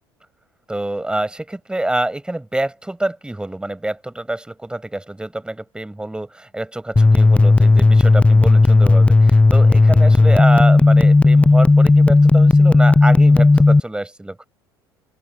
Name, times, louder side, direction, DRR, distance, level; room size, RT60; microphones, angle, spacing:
voice 1, 0.7-14.5, right 1 dB, 5° right, 4.5 m, -26 dB
sound 1, 7.0-13.8, left 3 dB, 10° left, 0.5 m, -12 dB
open air
figure-of-eight pair, 60°, 12 cm